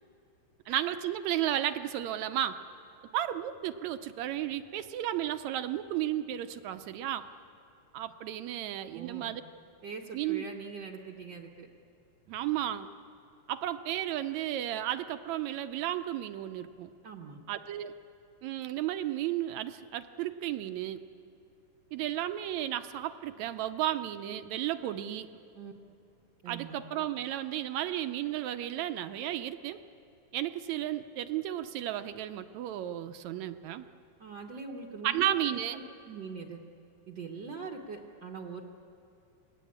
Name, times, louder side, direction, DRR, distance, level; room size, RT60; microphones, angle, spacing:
voice 1, 0.7-2.6 3.1-7.3 7.9-9.4 10.1-10.4 12.3-12.9 13.5-16.9 17.5-18.0 18.4-21.0 21.9-25.3 26.5-29.8 30.3-33.9 35.0-35.8, right 12 dB, 75° right, 10 dB, 1.8 m, -33 dB
voice 2, 8.9-9.3 9.8-11.7 17.0-17.4 25.5-25.7 26.4-26.8 34.2-36.6 37.1-38.6, right 5 dB, 60° right, 0 dB, 1.2 m, -42 dB
28.5 x 19.0 x 8.7 m, 2.6 s
omnidirectional pair, 3.7 m